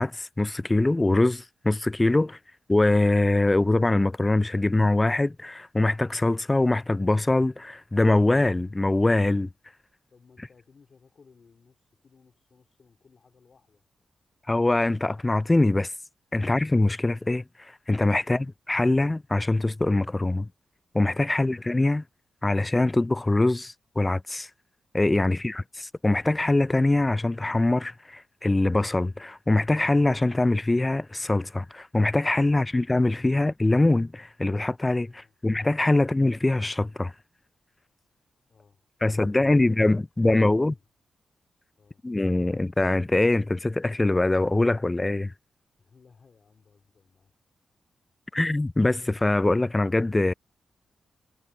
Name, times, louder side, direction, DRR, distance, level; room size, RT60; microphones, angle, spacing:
voice 1, 0.0-2.4 2.7-9.5 14.5-15.9 16.3-20.5 20.9-22.0 22.4-24.5 24.9-37.1 39.0-40.7 42.0-45.3 48.3-50.3, left 2 dB, 20° left, 0.3 m, -23 dB
voice 2, 10.1-13.8 18.2-18.4 25.3-25.5 35.1-35.3 38.5-39.8 40.3-40.9 41.8-42.1 45.8-47.3, left 5 dB, 55° left, 2.8 m, -59 dB
cardioid pair, 65°, 0 cm